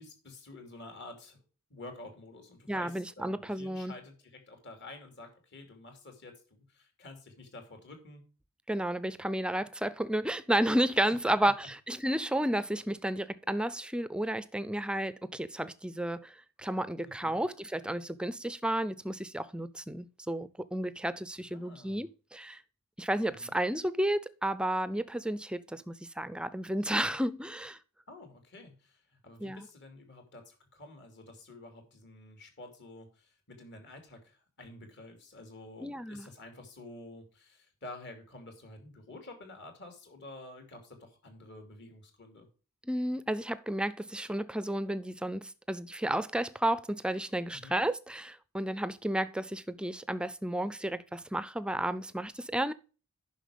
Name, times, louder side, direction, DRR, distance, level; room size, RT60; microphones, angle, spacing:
voice 1, 0.0-1.4 1.7-8.2 11.1-11.2 11.4-11.5 17.1-17.4 21.5-22.1 23.3-23.5 28.1-42.5 47.5-47.8, left 2 dB, 55° left, 2.7 m, -50 dB
voice 2, 2.7-3.9 8.7-11.5 11.9-22.6 23.0-27.8 29.4-29.6 35.8-36.3 42.9-52.7, right 1 dB, 5° right, 0.4 m, -32 dB
10.0 x 6.0 x 5.0 m
head